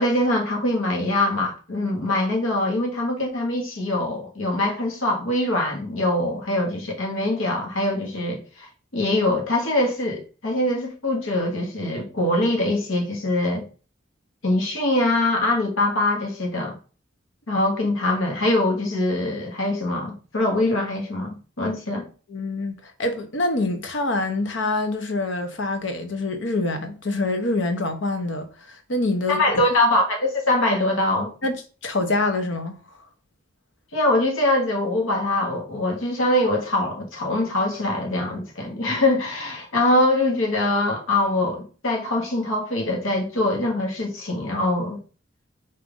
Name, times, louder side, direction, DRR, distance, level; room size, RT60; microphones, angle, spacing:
voice 1, 0.0-8.7 8.9-13.6 14.4-16.7 17.5-22.0 29.3-31.3 33.9-45.0, left 1 dB, 90° left, 1.3 m, -23 dB
voice 2, 22.3-29.6 31.4-32.8, left 2 dB, 70° left, 0.9 m, -26 dB
5.3 x 2.7 x 3.6 m
head